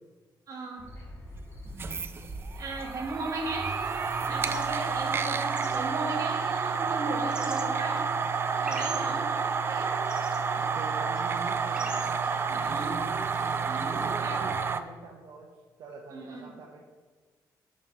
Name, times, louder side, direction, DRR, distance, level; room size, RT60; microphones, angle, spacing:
voice 1, 0.5-0.9 2.5-8.1 8.6-9.3 9.7-10.0 12.5-13.0 13.7-14.6 16.1-16.4, right 2 dB, 50° right, 0 dB, 2.2 m, -36 dB
sound 1, 0.8-5.8, left 1 dB, 35° left, 2.1 m, -46 dB
sound 2, 1.7-14.8, right 5 dB, 30° right, 0.4 m, -30 dB
sound 3, 3.8-14.4, right 2 dB, 10° right, 1.0 m, -46 dB
voice 2, 8.6-9.4 10.6-13.1 13.4-15.5 15.8-16.8, right 4 dB, 85° right, 0 dB, 1.0 m, -44 dB
12.5 x 5.4 x 4.2 m, 1.4 s
cardioid pair, 150°, 7 cm